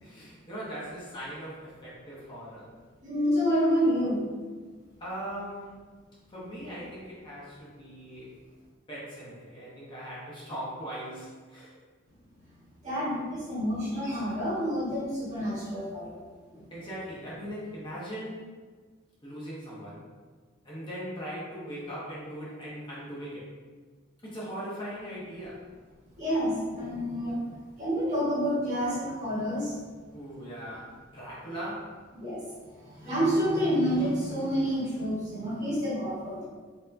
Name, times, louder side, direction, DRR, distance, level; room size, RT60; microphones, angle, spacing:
voice 1, 0.0-2.7 5.0-5.8 6.3-8.3 8.9-11.7 16.7-18.4 19.2-20.1 20.6-23.5 24.2-25.7 30.1-32.0, equal, 25° left, -8 dB, 0.9 m, -39 dB
voice 2, 3.0-4.3 12.8-16.2 16.5-16.6 26.2-27.4 27.8-29.7 32.1-32.4 32.9-36.5, equal, 35° right, -8 dB, 1.5 m, -28 dB
4.3 x 2.8 x 2.7 m, 1.5 s
head